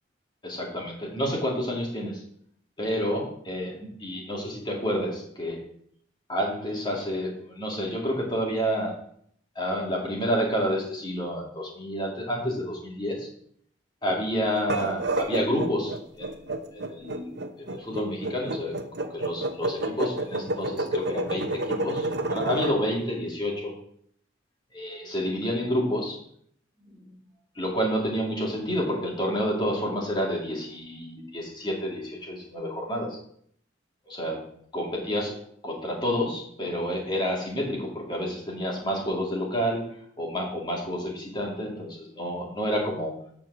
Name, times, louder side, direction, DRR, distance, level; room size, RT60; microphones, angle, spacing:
voice 1, 0.4-2.2 2.8-5.7 6.3-9.0 9.6-13.3 14.0-16.4 16.7-17.3 17.6-23.7 24.7-26.2 27.5-33.2 34.1-34.4 34.7-39.9 40.2-43.1, equal, 25° left, -1 dB, 2.5 m, -29 dB
sound 1, 14.6-22.8, right 2 dB, 55° right, 0.9 m, -30 dB
8.8 x 4.7 x 7.3 m, 0.64 s
head